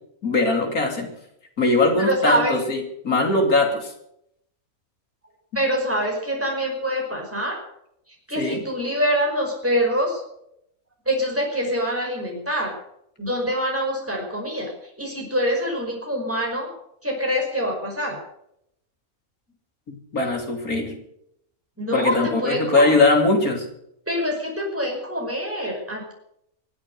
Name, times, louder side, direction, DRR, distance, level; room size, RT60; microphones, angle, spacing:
voice 1, 0.2-1.1 1.6-3.9 8.4-8.6 19.9-20.9 21.9-23.7, left 2 dB, 75° left, 3 dB, 3.4 m, -21 dB
voice 2, 2.0-2.6 5.5-7.6 8.3-10.2 11.1-12.8 13.2-14.7 15.0-16.7 17.0-18.2 21.8-22.9 24.1-26.1, equal, 10° right, -1 dB, 5.3 m, -25 dB
24.5 x 8.8 x 6.6 m, 0.76 s
omnidirectional pair, 1.5 m